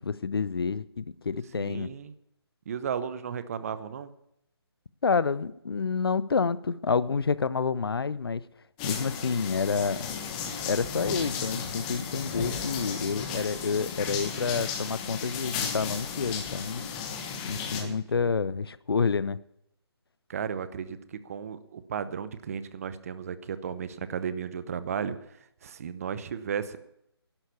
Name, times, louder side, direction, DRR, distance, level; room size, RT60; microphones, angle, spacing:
voice 1, 0.0-1.9 5.0-8.4 8.8-10.1 10.7-16.9 17.4-19.4, left 5 dB, 65° left, 0.6 m, -28 dB
voice 2, 1.5-2.1 2.7-4.1 17.6-18.3 20.3-25.2 25.6-26.8, right 7 dB, 35° right, 0.8 m, -35 dB
sound 1, 8.8-17.8, left 6 dB, 20° left, 1.4 m, -34 dB
11.5 x 11.5 x 6.9 m
figure-of-eight pair, 150°, 14 cm